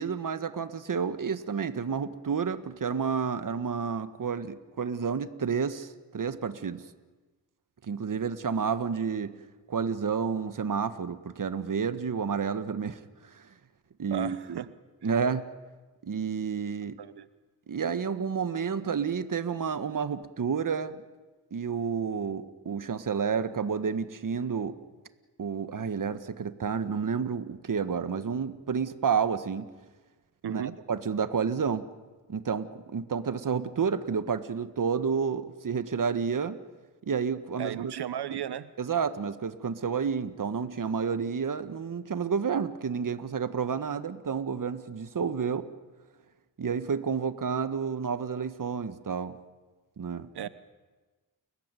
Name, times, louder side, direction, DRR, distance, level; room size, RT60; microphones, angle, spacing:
voice 1, 0.0-6.8 7.8-9.3 9.7-13.0 13.3-13.5 14.0-14.6 15.0-15.4 16.0-17.0 17.7-21.0 21.5-24.8 25.4-29.7 30.5-31.8 32.3-36.6 37.0-37.9 38.8-45.7 46.6-49.4 50.0-50.5, right 6 dB, 50° right, 12 dB, 1.6 m, -30 dB
voice 2, 14.1-14.7 15.0-15.1 17.0-17.3 30.4-30.8 37.6-38.7 50.3-50.5, right 10 dB, 65° right, 15 dB, 1.0 m, -35 dB
29.5 x 15.0 x 9.3 m, 1.3 s
supercardioid pair, 40°, 42 cm